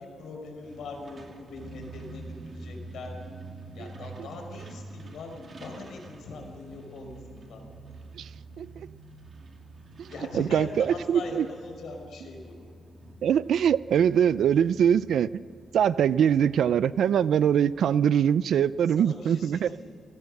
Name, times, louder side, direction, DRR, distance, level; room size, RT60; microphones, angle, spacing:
voice 1, 0.0-3.1 3.7-7.6 10.1-12.5 18.9-19.9, left 3 dB, 90° left, 3 dB, 5.2 m, -41 dB
Truck, 0.6-19.1, right 2 dB, 40° right, 2.6 m, -47 dB
voice 2, 10.3-11.5 13.2-15.3 15.7-19.7, right 8 dB, 80° right, 17 dB, 0.5 m, -23 dB
30.0 x 18.0 x 6.7 m, 2.4 s
wide cardioid pair, 170°, 0 cm